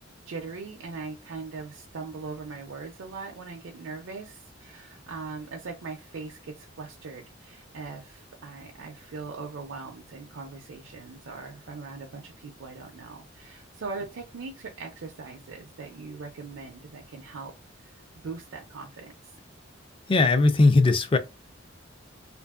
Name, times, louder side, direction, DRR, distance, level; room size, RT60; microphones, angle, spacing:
voice 1, 0.3-17.5 17.8-19.3, right 4 dB, 85° right, 0.5 m, -40 dB
voice 2, 20.1-21.2, left 3 dB, 30° left, 0.4 m, -19 dB
2.8 x 2.5 x 2.3 m
head